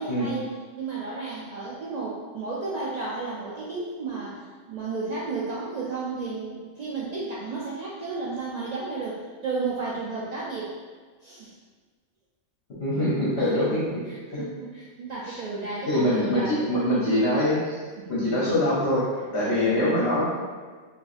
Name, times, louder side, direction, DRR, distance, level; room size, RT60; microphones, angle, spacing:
voice 1, 0.0-10.7 11.2-11.5 14.1-16.8 18.0-18.3 19.4-19.9, right 3 dB, 65° right, -6 dB, 0.4 m, -33 dB
voice 2, 12.8-13.8 14.3-14.4 15.3-15.4 15.9-17.8 18.1-19.0 19.3-20.2, left 1 dB, 55° left, -8 dB, 1.1 m, -23 dB
4.5 x 2.6 x 2.5 m, 1.5 s
omnidirectional pair, 1.3 m